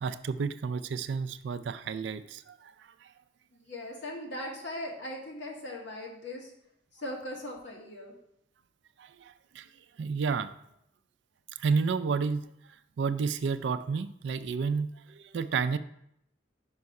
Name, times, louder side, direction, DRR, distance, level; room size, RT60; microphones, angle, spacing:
voice 1, 0.0-2.7 3.0-3.1 9.0-9.7 10.0-10.5 11.6-12.5 13.0-15.8, right 5 dB, 70° right, 12 dB, 0.4 m, -31 dB
voice 2, 3.5-6.5 6.9-8.1, left 1 dB, 75° left, -1 dB, 1.6 m, -39 dB
5.5 x 5.3 x 4.7 m, 0.77 s
head